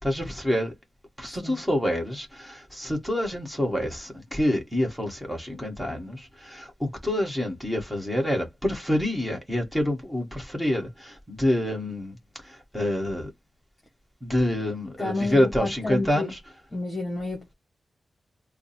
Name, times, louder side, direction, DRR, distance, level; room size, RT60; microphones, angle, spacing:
voice 1, 0.0-0.7 1.2-13.3 14.2-16.4, left 1 dB, 5° right, 1.5 m, -27 dB
voice 2, 15.0-16.3 16.7-17.5, left 2 dB, 25° left, 1.2 m, -30 dB
3.4 x 2.2 x 4.2 m
wide cardioid pair, 170°, 0 cm